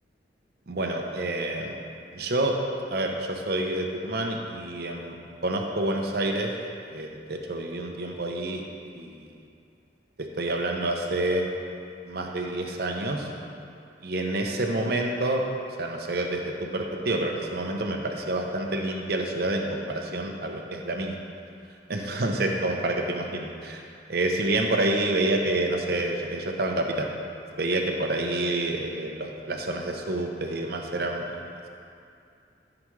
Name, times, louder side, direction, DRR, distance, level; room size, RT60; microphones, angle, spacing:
voice 1, 0.7-1.8 2.1-2.6 2.9-5.2 5.4-6.5 6.9-8.6 8.9-9.1 10.2-11.5 12.1-13.3 14.0-15.4 15.8-21.2 21.9-23.8 24.1-27.1 27.6-31.5, right 2 dB, 55° right, 1 dB, 0.7 m, -28 dB
13.0 x 5.0 x 3.2 m, 2.4 s
head